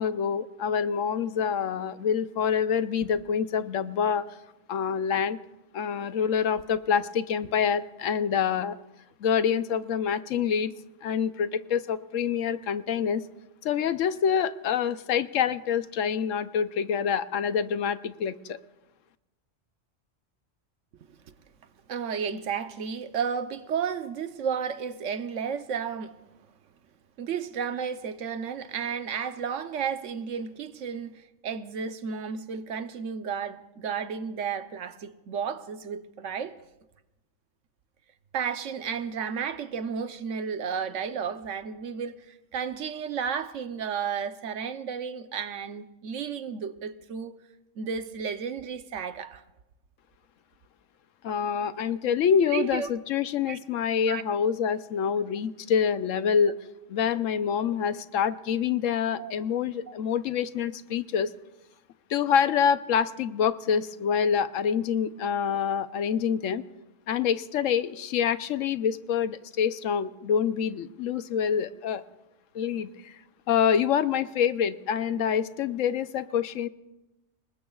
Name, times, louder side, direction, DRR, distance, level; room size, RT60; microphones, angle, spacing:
voice 1, 0.0-4.3 4.7-5.4 5.7-8.8 9.2-10.7 11.0-13.2 13.6-18.6 51.2-56.6 56.9-61.3 62.1-66.6 67.1-72.0 72.5-73.1 73.5-76.7, left 7 dB, 85° left, 1.1 m, -26 dB
voice 2, 21.9-26.1 27.2-36.5 38.3-47.3 47.8-49.4 52.5-52.9 53.5-53.6 54.1-54.2 59.2-59.3, right 7 dB, 75° right, 1.2 m, -32 dB
26.0 x 20.5 x 2.3 m
omnidirectional pair, 1.3 m